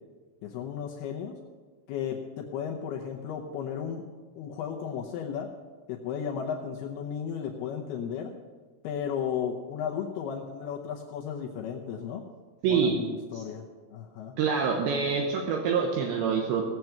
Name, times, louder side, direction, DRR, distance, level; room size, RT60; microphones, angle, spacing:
voice 1, 0.4-1.4 1.9-4.0 4.4-5.5 5.9-8.3 8.8-12.2 12.7-14.4, left 8 dB, 80° left, 1 dB, 2.3 m, -34 dB
voice 2, 12.6-13.0 13.3-13.4 14.4-16.7, right 6 dB, 75° right, 1 dB, 3.1 m, -26 dB
18.0 x 7.8 x 5.9 m, 1.5 s
omnidirectional pair, 5.6 m